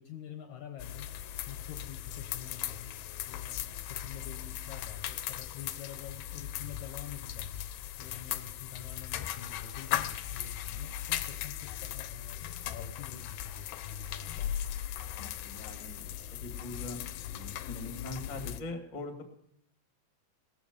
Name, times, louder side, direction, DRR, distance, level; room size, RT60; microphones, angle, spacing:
voice 1, 0.0-14.6, left 9 dB, 70° left, 5 dB, 2.0 m, -47 dB
sound 1, 0.8-18.6, left 11 dB, 85° left, 2.7 m, -38 dB
voice 2, 15.0-16.1 16.4-17.0 17.3-19.2, left 2 dB, 20° left, 4 dB, 1.1 m, -42 dB
18.0 x 14.0 x 5.2 m, 0.74 s
omnidirectional pair, 4.3 m